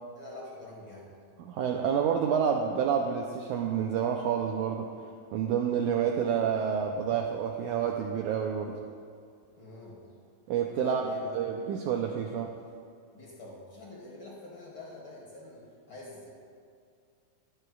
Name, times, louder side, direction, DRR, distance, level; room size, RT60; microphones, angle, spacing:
voice 1, 0.1-1.2 9.6-10.1 10.8-11.4 13.1-16.3, left 2 dB, 45° left, -4 dB, 1.8 m, -45 dB
voice 2, 1.4-4.9 5.3-8.8 10.5-11.0 11.3-12.5, right 7 dB, 85° right, 2 dB, 1.7 m, -28 dB
22.0 x 8.0 x 2.3 m, 2.3 s
omnidirectional pair, 4.1 m